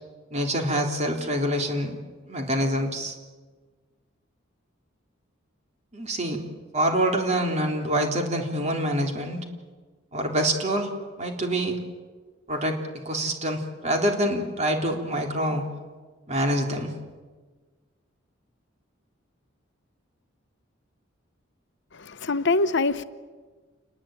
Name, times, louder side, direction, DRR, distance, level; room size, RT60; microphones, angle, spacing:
voice 1, 0.3-2.0 2.2-3.2 5.9-6.4 6.7-9.4 10.1-10.9 11.2-11.8 12.5-15.7 16.3-16.9, right 1 dB, 35° right, 3.7 m, -26 dB
voice 2, 21.9-23.0, left 3 dB, 60° left, 0.9 m, -24 dB
29.0 x 20.5 x 9.2 m
head